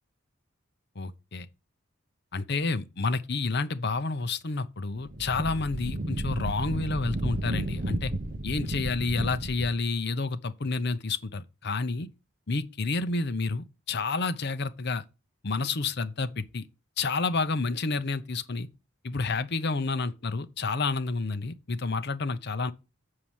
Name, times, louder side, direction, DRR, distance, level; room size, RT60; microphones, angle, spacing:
voice 1, 1.0-1.5 2.3-8.1 8.4-12.1 12.5-15.0 15.4-16.7 17.0-18.7 19.0-22.7, left 3 dB, 55° left, 0.8 m, -29 dB
Wind, 5.0-9.8, right 1 dB, 40° right, 0.8 m, -32 dB
7.3 x 4.8 x 7.1 m
head